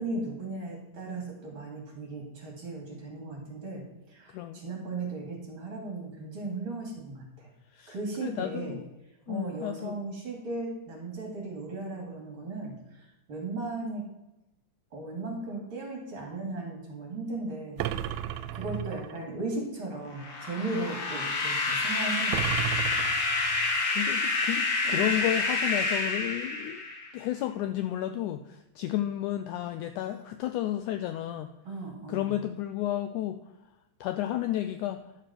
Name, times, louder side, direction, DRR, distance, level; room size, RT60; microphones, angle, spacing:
voice 1, 0.0-7.5 7.9-8.8 9.3-14.0 14.9-18.3 18.5-22.8 23.6-23.8 24.8-25.2 31.6-32.4, right 2 dB, 40° right, -1 dB, 2.8 m, -37 dB
voice 2, 4.3-4.6 7.7-8.0 8.2-8.8 9.3-10.0 24.0-26.8 27.1-31.5 32.1-33.4 34.0-35.0, left 13 dB, 85° left, 9 dB, 1.8 m, -32 dB
sound 1, 17.8-19.2 22.3-23.8, right 12 dB, 85° right, 2.3 m, -34 dB
sound 2, 20.2-27.2, left 3 dB, 50° left, 1.5 m, -28 dB
11.5 x 6.7 x 5.9 m, 0.93 s
omnidirectional pair, 4.1 m